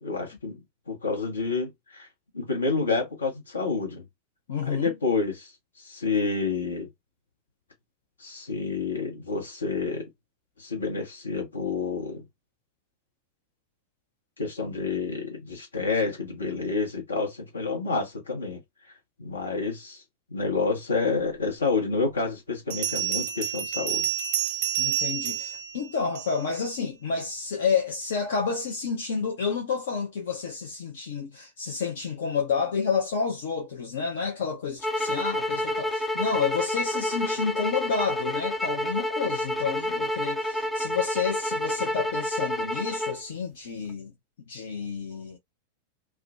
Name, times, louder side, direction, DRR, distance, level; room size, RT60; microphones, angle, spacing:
voice 1, 0.0-2.1 2.3-4.1 4.6-5.5 5.8-6.9 8.2-10.1 10.6-12.2 14.4-18.6 19.2-20.0 20.3-24.1, left 4 dB, 75° left, 0.9 m, -29 dB
voice 2, 4.5-4.9 24.8-44.1 44.5-45.4, left 5 dB, 60° left, 0.6 m, -30 dB
Bell, 21.5-21.6 22.7-26.6, right 11 dB, 50° right, 0.6 m, -29 dB
sound 1, 34.8-43.2, left 1 dB, 5° left, 0.4 m, -29 dB
2.4 x 2.1 x 2.4 m
figure-of-eight pair, 90°, 0 cm